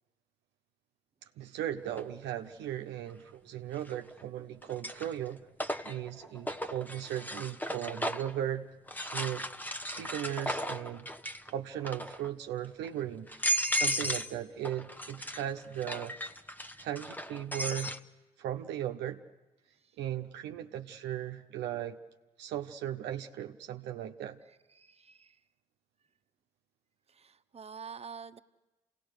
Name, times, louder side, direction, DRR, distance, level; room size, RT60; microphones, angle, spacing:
voice 1, 1.4-5.4 5.8-8.7 9.1-9.5 9.8-11.1 11.5-13.3 13.7-16.2 16.8-18.0 18.4-19.2 20.0-22.0 22.4-24.4, right 11 dB, 80° right, 0.8 m, -37 dB
sound 1, 2.0-2.1 3.8-4.2 4.6-8.4 8.9-11.5 11.8-12.3 12.8-12.9 13.3-14.4 14.6-18.0, equal, 10° left, 1.0 m, -35 dB
voice 2, 19.7-20.0 24.4-25.4 27.1-28.4, right 6 dB, 35° right, 0.9 m, -48 dB
28.0 x 17.5 x 6.5 m
hypercardioid pair, 40°, 18 cm